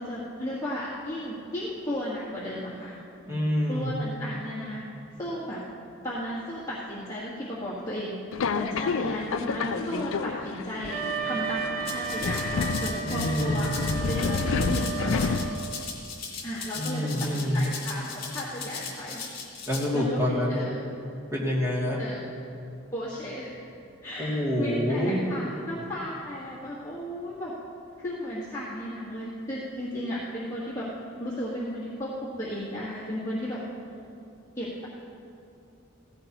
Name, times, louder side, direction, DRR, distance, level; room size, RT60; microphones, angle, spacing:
voice 1, 0.0-2.9 3.7-4.8 5.2-5.6 6.0-8.2 8.5-12.5 12.8-13.7 14.1-15.4 16.4-19.2 19.9-20.8 22.0-22.2 22.9-23.5 24.0-27.5 28.0-30.9 31.1-33.6 34.5-34.9, equal, 15° left, -8 dB, 1.6 m, -34 dB
voice 2, 3.3-3.9 13.0-13.6 16.7-17.6 19.7-20.7 21.3-22.0 24.2-25.2, equal, 15° right, -6 dB, 2.5 m, -27 dB
Subway metro underground, 8.3-15.9, left 5 dB, 75° left, 0.4 m, -30 dB
Wind instrument woodwind instrument, 10.9-15.8, right 9 dB, 40° right, 3.0 m, -34 dB
Rattle (instrument), 11.8-19.8, left 5 dB, 45° left, 2.5 m, -38 dB
16.5 x 14.5 x 3.0 m, 2.6 s
head